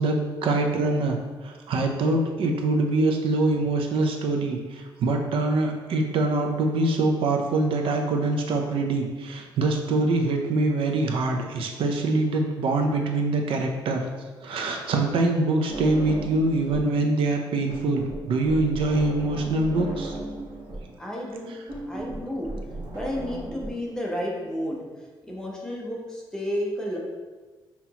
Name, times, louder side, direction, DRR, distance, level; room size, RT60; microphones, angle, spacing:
voice 1, 0.0-14.0 14.4-20.2, right 2 dB, 75° right, 3 dB, 0.5 m, -24 dB
sound 1, 15.7-17.0 17.2-23.7, right 1 dB, 45° right, 1.2 m, -36 dB
voice 2, 21.0-21.5 21.9-22.5 22.9-24.8 25.3-27.0, equal, 5° left, -3 dB, 0.6 m, -31 dB
5.6 x 2.9 x 2.9 m, 1.3 s
wide cardioid pair, 180°, 9 cm